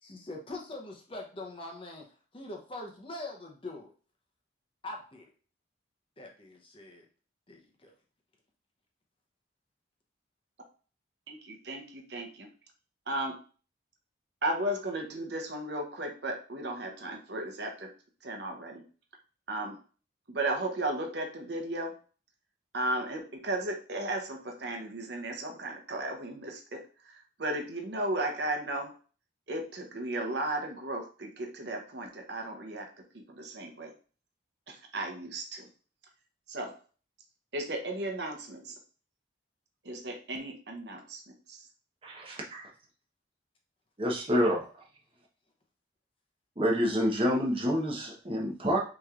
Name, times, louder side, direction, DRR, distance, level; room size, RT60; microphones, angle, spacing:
voice 1, 0.0-2.1 2.3-3.9 4.8-5.3 6.2-7.0 7.5-7.9, left 2 dB, 30° left, 1 dB, 0.8 m, -43 dB
voice 2, 11.3-12.5 13.1-13.4 14.4-17.9 18.2-18.8 19.5-19.8 20.3-22.0 22.7-28.9 29.5-33.9 34.7-35.7 36.5-36.8 37.5-38.8 39.8-41.7, right 1 dB, 60° right, 2 dB, 0.9 m, -35 dB
voice 3, 42.0-42.7 44.0-44.7 46.6-48.8, equal, 30° right, -2 dB, 1.1 m, -28 dB
6.1 x 3.1 x 2.5 m, 0.38 s
head